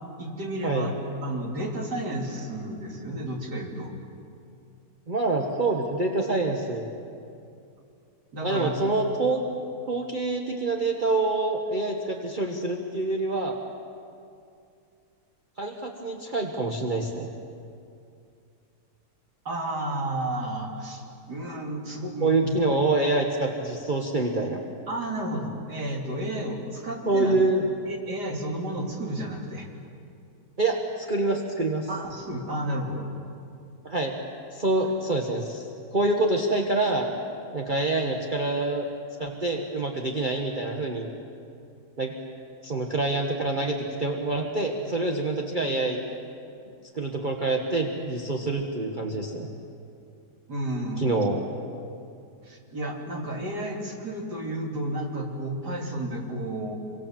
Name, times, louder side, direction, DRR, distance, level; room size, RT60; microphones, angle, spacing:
voice 1, 0.2-0.9 1.2-3.9 8.3-8.8 19.5-22.5 24.9-27.3 27.9-29.7 31.9-33.1 34.8-34.9 50.5-51.1 52.4-56.8, right 1 dB, 80° right, 0 dB, 3.6 m, -32 dB
voice 2, 5.1-6.9 8.4-9.4 9.9-13.6 15.6-17.3 22.2-24.6 27.1-27.6 30.6-31.9 33.8-34.1 34.5-35.7 35.9-37.1 37.5-38.8 39.2-41.1 42.0-42.1 42.6-46.0 46.9-49.5 51.0-51.4, right 2 dB, 30° right, 0 dB, 1.6 m, -26 dB
26.0 x 24.5 x 7.6 m, 2.5 s
omnidirectional pair, 1.7 m